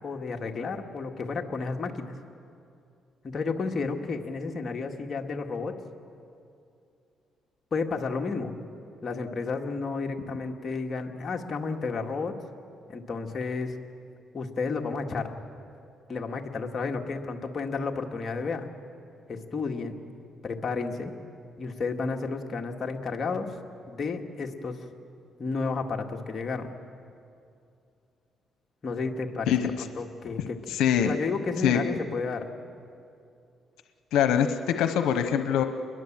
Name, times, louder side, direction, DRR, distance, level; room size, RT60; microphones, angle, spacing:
voice 1, 0.0-2.2 3.2-5.7 7.7-8.5 9.0-12.3 12.9-13.7 14.3-15.3 16.1-18.7 19.3-20.0 20.4-21.1 21.6-23.6 23.9-24.8 25.4-26.7 28.8-29.5 29.8-32.5, left 4 dB, 45° left, 3 dB, 2.0 m, -32 dB
voice 2, 30.7-31.1 31.6-31.8 34.1-35.6, left 9 dB, 90° left, 8 dB, 1.0 m, -23 dB
28.0 x 22.0 x 7.5 m, 2.6 s
cardioid pair, 90°, 0 cm